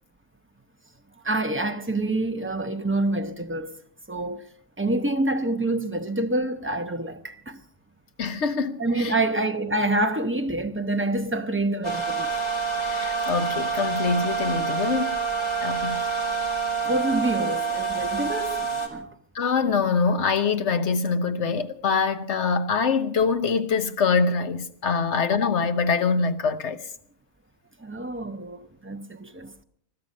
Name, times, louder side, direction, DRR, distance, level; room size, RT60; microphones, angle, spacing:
voice 1, 1.2-3.8 4.1-4.4 4.8-7.6 8.8-12.3 16.8-19.1 27.8-29.6, right 2 dB, 10° right, 0.7 m, -27 dB
voice 2, 8.2-9.1 12.8-15.2 15.6-16.0 19.3-26.8, left 5 dB, 60° left, 1.2 m, -24 dB
sound 1, 11.8-18.9, right 5 dB, 30° left, 2.4 m, -27 dB
21.0 x 12.5 x 5.3 m
omnidirectional pair, 1.4 m